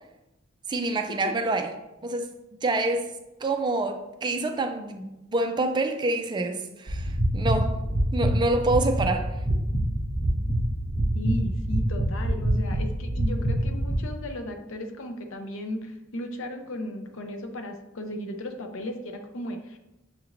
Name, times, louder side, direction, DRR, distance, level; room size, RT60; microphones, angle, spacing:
voice 1, 0.7-1.7 2.0-2.3 2.6-3.1 3.4-7.8 8.1-9.3, right 2 dB, 20° right, 6 dB, 0.3 m, -27 dB
sound 1, 6.9-13.9, right 1 dB, 45° left, 1.2 m, -26 dB
voice 2, 11.1-19.8, left 1 dB, 70° left, 5 dB, 0.6 m, -35 dB
6.6 x 3.0 x 2.5 m, 0.95 s
head